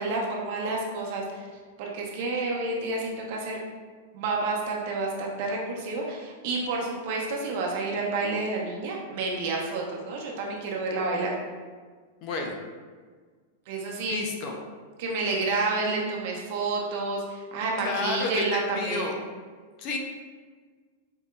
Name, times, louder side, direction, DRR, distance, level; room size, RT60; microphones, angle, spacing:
voice 1, 0.0-1.5 1.8-3.6 4.1-11.3 13.7-14.2 15.0-19.2, right 3 dB, 55° right, -1 dB, 0.8 m, -29 dB
voice 2, 12.2-12.5 14.0-14.5 17.8-19.1 19.8-20.0, left 3 dB, 45° left, 3 dB, 0.5 m, -30 dB
4.6 x 2.7 x 2.3 m, 1.5 s
hypercardioid pair, 135°, 0 cm